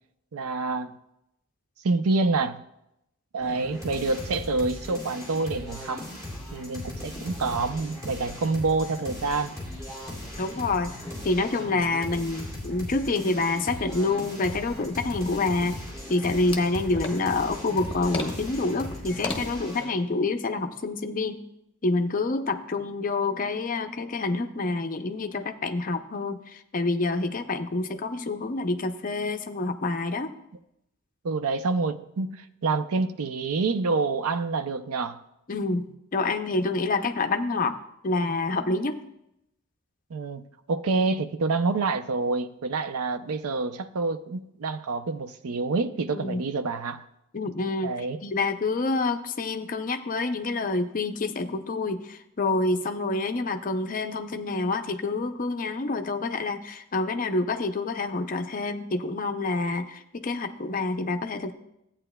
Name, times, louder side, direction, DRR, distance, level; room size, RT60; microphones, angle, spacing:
voice 1, 0.3-0.9 1.8-2.6 3.3-6.1 6.5-9.5 31.2-35.2 40.1-40.4 40.7-47.0 47.8-48.2, right 3 dB, 85° right, 0.5 m, -27 dB
sound 1, 3.4-19.9, left 1 dB, 15° right, 2.3 m, -38 dB
sound 2, 4.2-4.3 4.7-4.8 5.0-5.1 5.7-8.8 9.1-19.4, left 2 dB, 25° left, 1.0 m, -41 dB
voice 2, 10.4-10.9 11.2-15.8 16.1-21.5 21.8-30.3 35.5-37.8 38.0-39.0 46.1-46.4 47.3-48.0 48.2-61.5, left 3 dB, 40° left, 0.5 m, -27 dB
14.0 x 8.7 x 2.2 m
head